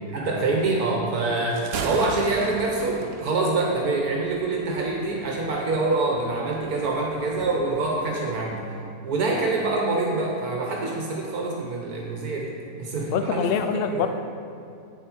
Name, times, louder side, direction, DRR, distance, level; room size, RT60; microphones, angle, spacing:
voice 1, 0.1-8.7 9.0-13.6 13.9-14.1, right 3 dB, 75° right, -1 dB, 1.5 m, -25 dB
Thunder, 1.4-8.6, right 4 dB, 60° right, 0.7 m, -38 dB
voice 2, 13.1-14.1, left 7 dB, 75° left, 8 dB, 0.5 m, -25 dB
9.0 x 7.5 x 4.5 m, 2.7 s
omnidirectional pair, 1.6 m